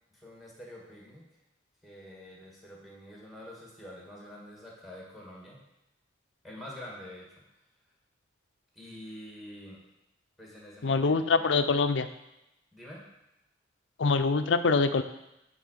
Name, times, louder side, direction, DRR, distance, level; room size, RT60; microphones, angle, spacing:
voice 1, 0.1-1.3 1.8-5.6 6.4-7.4 8.7-9.8 10.4-11.5 12.7-13.0, left 1 dB, ahead, -4 dB, 1.9 m, -47 dB
voice 2, 10.8-12.1 14.0-15.0, left 4 dB, 75° left, 10 dB, 0.5 m, -24 dB
9.3 x 3.9 x 6.6 m, 0.88 s
head